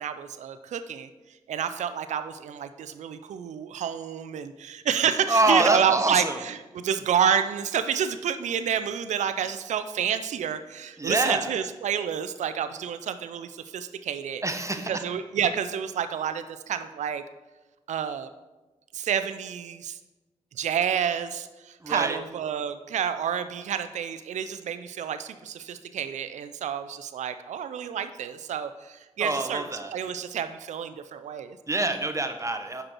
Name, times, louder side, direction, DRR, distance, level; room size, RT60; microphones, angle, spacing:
voice 1, 0.0-14.4 14.8-17.2 17.9-18.3 18.9-20.0 20.5-29.6 29.9-31.6, right 8 dB, 80° right, 10 dB, 0.4 m, -29 dB
voice 2, 5.3-6.4 11.0-11.5 14.4-14.9 21.8-22.2 29.2-29.9 31.7-32.8, right 2 dB, 25° right, 7 dB, 0.8 m, -25 dB
6.1 x 5.1 x 4.3 m, 1.1 s
supercardioid pair, 45°, 12 cm